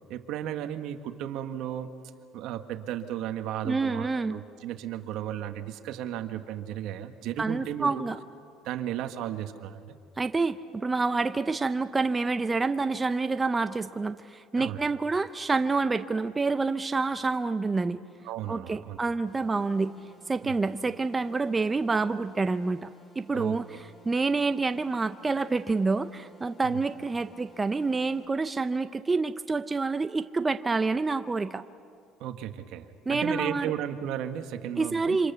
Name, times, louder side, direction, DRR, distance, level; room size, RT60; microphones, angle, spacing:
voice 1, 0.1-1.9 2.3-8.0 8.6-10.0 14.5-14.9 18.2-19.0 20.4-20.6 23.3-23.6 26.6-26.8 32.2-35.2, right 11 dB, 70° right, 8 dB, 1.5 m, -34 dB
voice 2, 3.6-4.4 7.4-8.2 10.2-18.0 18.5-19.9 20.3-22.9 23.2-23.6 24.0-31.6 33.1-33.7 34.8-35.3, right 3 dB, 20° right, 10 dB, 0.6 m, -27 dB
sound 1, 19.3-28.3, equal, 20° left, 4.0 m, -57 dB
27.5 x 26.0 x 6.9 m, 2.3 s
cardioid pair, 110°, 0 cm